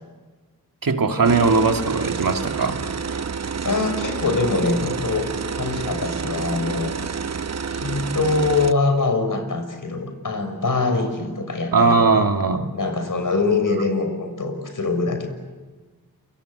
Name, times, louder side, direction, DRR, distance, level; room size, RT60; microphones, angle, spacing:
voice 1, 0.8-2.8 11.7-12.7, right 4 dB, 65° right, 4 dB, 2.5 m, -19 dB
sound 1, 1.2-8.7, right 5 dB, 45° right, 0.9 m, -29 dB
voice 2, 3.6-5.3 5.5-6.9 7.7-11.9 12.7-15.3, left 3 dB, 60° left, 7 dB, 6.3 m, -23 dB
28.5 x 25.0 x 8.2 m, 1.3 s
cardioid pair, 50°, 37 cm